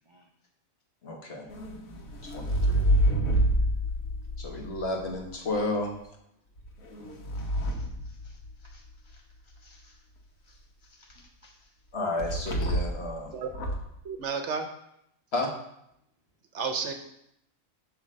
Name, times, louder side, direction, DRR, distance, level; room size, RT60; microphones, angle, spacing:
voice 1, 1.0-1.5 2.2-3.0 4.4-5.9 11.9-13.3 15.3-15.5, left 2 dB, 50° left, 1 dB, 1.3 m, -32 dB
sound 1, 1.5-5.6 6.6-8.9 12.2-13.1 13.5-14.0, equal, 90° left, 1.5 m, -28 dB
voice 2, 7.3-10.0 10.4-11.7, left 2 dB, 30° right, 0 dB, 0.5 m, -61 dB
voice 3, 14.0-14.7 16.5-16.9, right 5 dB, 65° right, 6 dB, 1.0 m, -31 dB
7.9 x 3.3 x 6.3 m, 0.78 s
omnidirectional pair, 1.4 m